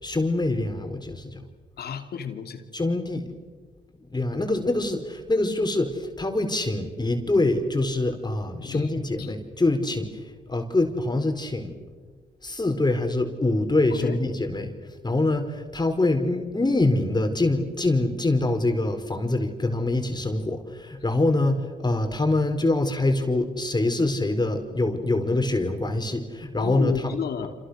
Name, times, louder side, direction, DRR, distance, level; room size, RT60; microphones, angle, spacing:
voice 1, 0.0-1.4 2.7-3.4 4.1-11.7 12.4-14.7 15.0-26.9, left 2 dB, 25° left, 5 dB, 4.6 m, -25 dB
voice 2, 1.8-2.6 8.6-8.9 9.2-9.3 13.9-14.2 26.6-27.5, left 7 dB, 70° left, 7 dB, 2.8 m, -31 dB
29.0 x 27.5 x 6.5 m, 1.4 s
supercardioid pair, 50°, 17 cm